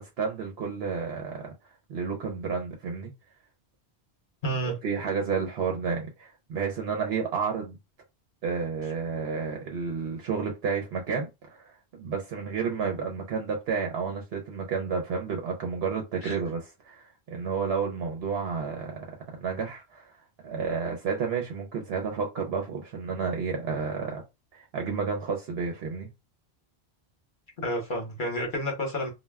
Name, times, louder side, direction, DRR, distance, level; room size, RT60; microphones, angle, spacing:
voice 1, 0.0-1.5 1.9-3.1 4.6-7.8 8.4-19.1 19.4-20.1 20.4-24.2 24.5-26.1, right 5 dB, 70° right, 0.8 m, -31 dB
voice 2, 4.4-4.7 16.2-16.4 27.6-29.1, equal, 50° left, 1.0 m, -30 dB
2.3 x 2.1 x 3.3 m
omnidirectional pair, 1.1 m